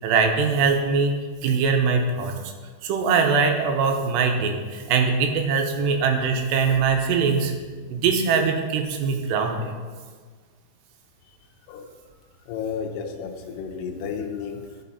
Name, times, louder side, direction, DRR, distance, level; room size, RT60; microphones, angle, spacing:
voice 1, 0.0-1.1 1.4-2.3 2.8-7.5 7.9-9.7, right 5 dB, 85° right, 4 dB, 3.0 m, -22 dB
voice 2, 12.5-14.6, left 6 dB, 75° left, 4 dB, 2.0 m, -32 dB
12.5 x 5.6 x 4.1 m, 1.5 s
omnidirectional pair, 4.8 m